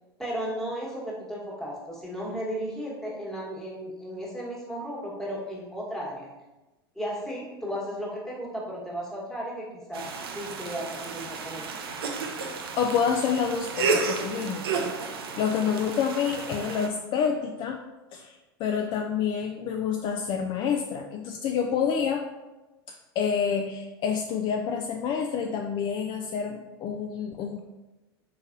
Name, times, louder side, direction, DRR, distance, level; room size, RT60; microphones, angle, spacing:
voice 1, 0.2-6.3 6.9-11.7, equal, 5° left, -5 dB, 1.3 m, -35 dB
sound 1, 9.9-16.9, right 4 dB, 75° right, 0.5 m, -32 dB
voice 2, 12.8-14.9 15.4-17.8 18.1-22.2 22.9-27.6, left 7 dB, 40° left, 3 dB, 0.3 m, -28 dB
4.0 x 3.8 x 2.6 m, 1.1 s
hypercardioid pair, 85°, 13 cm